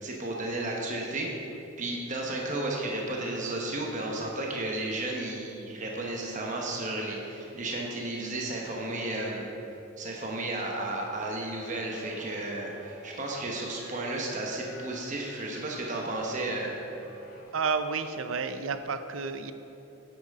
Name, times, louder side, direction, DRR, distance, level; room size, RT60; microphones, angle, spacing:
voice 1, 0.0-1.3 1.8-9.4 10.0-16.7, right 2 dB, 35° right, -1 dB, 1.0 m, -33 dB
sound 1, 11.6-17.4, equal, 5° right, 1.7 m, -52 dB
voice 2, 17.5-19.5, right 5 dB, 75° right, 10 dB, 0.5 m, -31 dB
9.4 x 8.8 x 3.6 m, 3.0 s
head